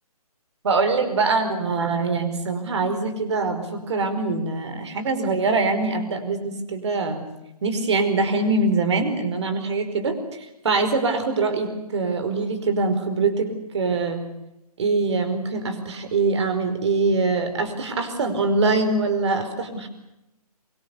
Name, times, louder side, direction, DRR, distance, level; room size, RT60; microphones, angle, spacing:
voice 1, 0.6-7.3 7.6-14.2 14.8-19.9, right 3 dB, 45° right, 9 dB, 4.9 m, -23 dB
25.0 x 24.0 x 8.4 m, 0.89 s
figure-of-eight pair, 155°, 20 cm